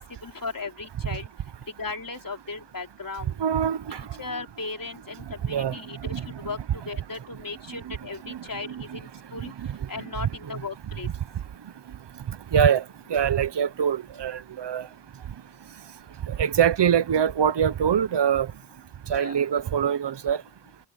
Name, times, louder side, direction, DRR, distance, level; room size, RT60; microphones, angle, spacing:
voice 1, 0.2-1.3 1.8-3.3 3.9-6.6 6.9-9.5 9.9-11.1 19.1-19.4, left 3 dB, 55° left, 3.7 m, -36 dB
voice 2, 3.4-4.0 5.5-5.8 6.1-6.2 7.8-7.9 8.3-9.0 9.4-9.7 10.2-10.6 11.0-11.1 12.3-12.8 13.1-14.9 16.3-18.5 19.1-20.4, right 8 dB, 85° right, 0.8 m, -24 dB
wide cardioid pair, 105°, 41 cm